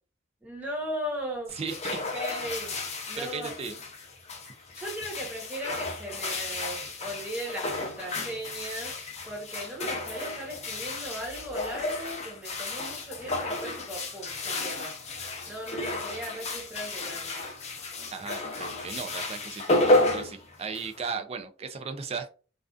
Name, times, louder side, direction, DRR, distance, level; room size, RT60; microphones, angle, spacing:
voice 1, 0.4-1.5 1.9-2.8 3.1-3.5 4.7-8.9 9.3-14.9 15.4-17.4, equal, 5° right, -1 dB, 0.8 m, -37 dB
sound 1, 1.5-21.1, left 2 dB, 35° left, 0.5 m, -32 dB
voice 2, 1.5-2.0 3.1-3.8 18.1-22.3, right 5 dB, 30° right, 7 dB, 0.3 m, -36 dB
2.4 x 2.3 x 2.3 m, 0.36 s
head